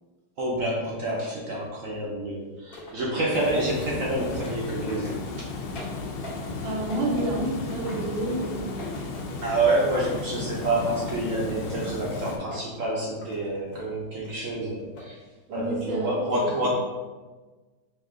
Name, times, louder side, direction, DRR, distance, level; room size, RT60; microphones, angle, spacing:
voice 1, 0.4-5.5 9.4-15.1 15.5-16.7, right 1 dB, 65° right, -3 dB, 0.8 m, -28 dB
sound 1, 2.7-6.6 6.9-9.7 10.0-11.6 12.2-12.8 13.2-13.9 14.2-15.1 15.5-15.9, equal, 55° left, 1.4 m, -45 dB
Water, 3.3-12.4, left 3 dB, 90° left, 1.4 m, -34 dB
voice 2, 6.6-9.1 15.5-16.7, right 2 dB, 85° right, -3 dB, 1.5 m, -30 dB
4.6 x 2.7 x 3.6 m, 1.3 s
omnidirectional pair, 2.1 m